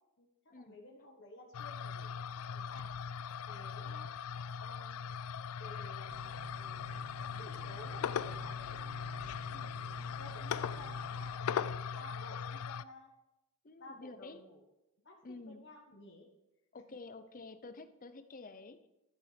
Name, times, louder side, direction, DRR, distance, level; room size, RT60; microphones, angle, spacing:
voice 1, 0.5-2.9 3.2-4.1 4.6-5.0 5.6-6.1 6.6-8.8 9.2-9.4 10.0-13.1 13.8-14.6 15.0-16.3, left 2 dB, 55° left, 1 dB, 1.3 m, -54 dB
sound 1, 1.5-12.8, left 7 dB, 75° left, 0.4 m, -40 dB
sound 2, 6.1-11.4, right 5 dB, 65° right, 0.4 m, -55 dB
voice 2, 13.6-14.4 15.2-15.6 16.7-18.9, left 3 dB, 40° left, 11 dB, 0.7 m, -50 dB
12.5 x 8.0 x 5.0 m, 0.94 s
head